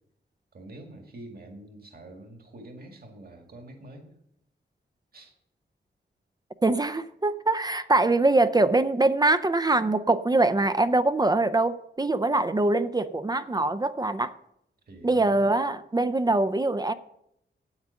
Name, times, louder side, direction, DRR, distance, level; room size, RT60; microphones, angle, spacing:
voice 1, 0.5-4.1 5.1-5.3 14.9-15.4, right 1 dB, 50° right, 4 dB, 1.9 m, -46 dB
voice 2, 6.6-14.3 15.0-16.9, right 2 dB, 20° right, 12 dB, 0.4 m, -23 dB
9.6 x 8.9 x 6.9 m, 0.78 s
wide cardioid pair, 155°, 19 cm